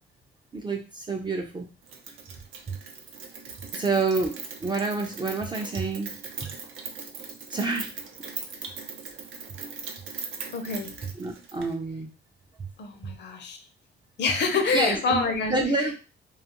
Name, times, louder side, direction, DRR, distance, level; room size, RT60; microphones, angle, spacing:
voice 1, 0.5-1.7 2.7-2.8 3.7-6.1 6.4-6.5 7.5-7.9 11.2-12.1 12.6-12.7 14.7-15.9, right 3 dB, 25° right, 2 dB, 0.4 m, -28 dB
Rain, 1.9-11.7, right 5 dB, 80° right, 0.6 m, -40 dB
voice 2, 10.5-10.9 12.8-13.6 14.2-15.6, left 4 dB, 60° left, 6 dB, 0.6 m, -26 dB
2.5 x 2.3 x 2.8 m, 0.32 s
cardioid pair, 90°, 20 cm